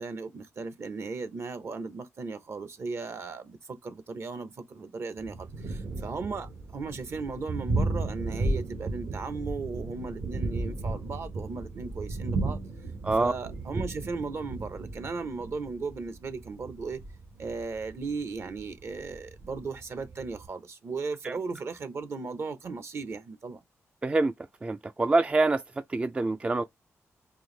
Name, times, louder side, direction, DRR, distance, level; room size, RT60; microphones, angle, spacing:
voice 1, 0.0-12.6 13.2-17.0 17.4-23.6, right 4 dB, 55° right, 0.9 m, -36 dB
Thunder, 5.2-20.5, right 2 dB, 70° right, 1.4 m, -34 dB
voice 2, 24.0-24.3 24.6-25.6 25.9-26.6, right 3 dB, 20° right, 0.3 m, -25 dB
4.6 x 2.6 x 3.2 m
cardioid pair, 90°, 5 cm